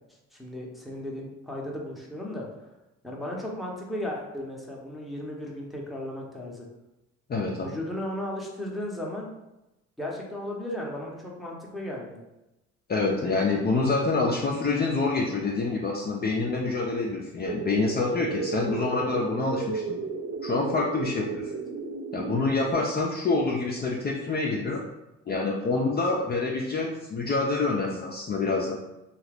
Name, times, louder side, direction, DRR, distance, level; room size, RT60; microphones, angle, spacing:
voice 1, 0.3-2.5 3.0-6.7 7.6-9.3 10.0-12.2 21.5-21.6, left 1 dB, ahead, -3 dB, 0.7 m, -35 dB
voice 2, 7.3-7.7 12.9-20.0 20.4-21.5 22.1-24.8 25.3-28.8, left 3 dB, 35° left, -2 dB, 0.5 m, -27 dB
Sireny Thing, 17.5-22.7, right 4 dB, 80° right, 0.6 m, -34 dB
2.7 x 2.4 x 3.3 m, 0.93 s
cardioid pair, 90°, 30 cm